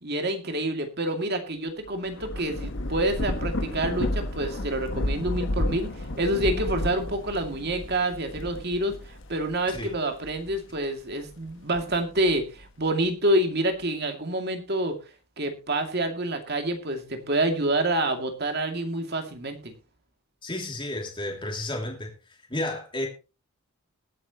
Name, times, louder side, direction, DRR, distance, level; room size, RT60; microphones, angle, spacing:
voice 1, 0.0-15.0 15.4-19.7, right 1 dB, 45° right, 2.4 m, -27 dB
Thunder / Rain, 1.9-10.8 11.3-12.7, left 1 dB, 55° left, 1.2 m, -32 dB
voice 2, 20.4-22.1 22.5-23.1, left 1 dB, 20° left, 2.6 m, -32 dB
20.0 x 9.0 x 3.0 m
head